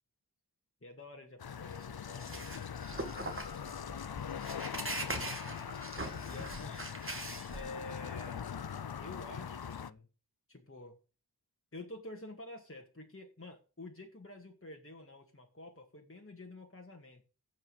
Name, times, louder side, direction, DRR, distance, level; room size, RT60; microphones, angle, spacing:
voice 1, 0.8-2.7 5.9-6.9 7.5-8.5 9.0-10.1 10.5-11.0 11.7-17.2, left 2 dB, 35° left, 1 dB, 2.1 m, -49 dB
sound 1, 1.4-9.9, left 7 dB, 65° left, 0.6 m, -42 dB
sound 2, 1.5-8.0, right 2 dB, 30° right, 1.8 m, -42 dB
16.0 x 5.4 x 5.3 m, 0.34 s
wide cardioid pair, 45°, 40 cm